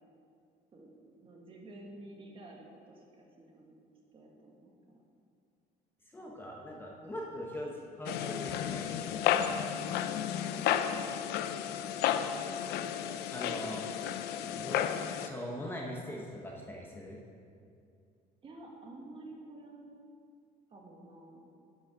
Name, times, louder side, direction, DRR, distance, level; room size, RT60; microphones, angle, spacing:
voice 1, 1.2-3.8 4.1-5.0 10.1-11.5 18.4-20.0 20.7-21.4, right 2 dB, 30° right, -1 dB, 1.8 m, -51 dB
voice 2, 6.1-9.4 13.0-13.8 14.5-14.9 15.2-17.2, equal, 10° left, -2 dB, 1.1 m, -41 dB
sound 1, 8.1-15.3, left 9 dB, 70° left, 0.6 m, -32 dB
11.0 x 6.6 x 5.9 m, 2.4 s
cardioid pair, 140°, 17 cm